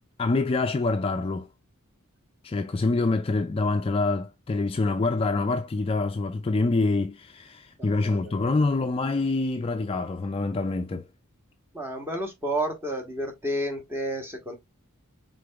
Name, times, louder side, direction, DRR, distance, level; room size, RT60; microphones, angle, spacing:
voice 1, 0.2-1.5 2.4-11.1, left 3 dB, 25° left, 0.3 m, -26 dB
voice 2, 11.7-14.5, right 1 dB, 10° right, 1.2 m, -31 dB
5.0 x 3.7 x 2.3 m
head